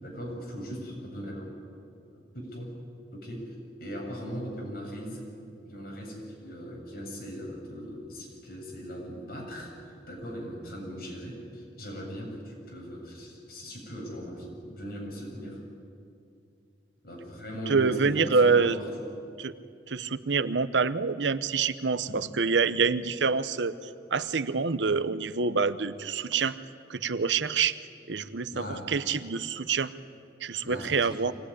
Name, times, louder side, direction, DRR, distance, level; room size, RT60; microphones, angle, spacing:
voice 1, 0.0-1.6 2.1-2.7 3.1-15.6 17.0-19.1 22.0-22.2 28.5-28.9 30.6-31.2, equal, 55° left, -1 dB, 7.2 m, -39 dB
voice 2, 17.7-18.8 19.4-19.5 19.9-23.8 24.1-26.6 26.9-27.8 28.1-29.9 30.4-31.3, right 5 dB, 90° right, 13 dB, 0.9 m, -26 dB
25.0 x 18.0 x 10.0 m, 2.5 s
head